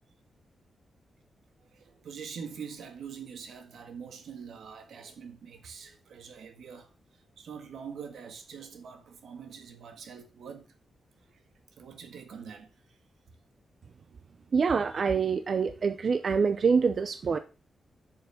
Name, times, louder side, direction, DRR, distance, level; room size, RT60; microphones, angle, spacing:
voice 1, 1.7-6.9 7.4-10.7 11.3-11.4 11.8-13.0, right 6 dB, 80° right, 1.7 m, -44 dB
voice 2, 14.5-17.4, right 5 dB, 45° right, 0.6 m, -25 dB
7.0 x 6.5 x 6.5 m
wide cardioid pair, 145°, 0 cm